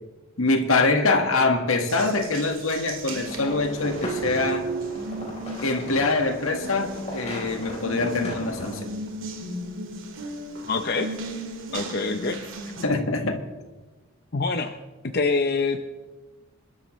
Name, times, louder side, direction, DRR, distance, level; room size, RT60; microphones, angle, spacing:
voice 1, 0.4-4.7 5.6-8.9 12.8-13.4, left 3 dB, 70° left, 1.7 m, -24 dB
Water tap faucet, 1.9-12.8, right 2 dB, 65° right, 2.1 m, -35 dB
sound 1, 3.2-8.8, equal, 30° left, 4.0 m, -37 dB
voice 2, 10.7-11.1 11.7-12.4 14.3-14.7 15.1-15.8, left 3 dB, 50° left, 0.7 m, -25 dB
27.5 x 12.5 x 3.2 m
head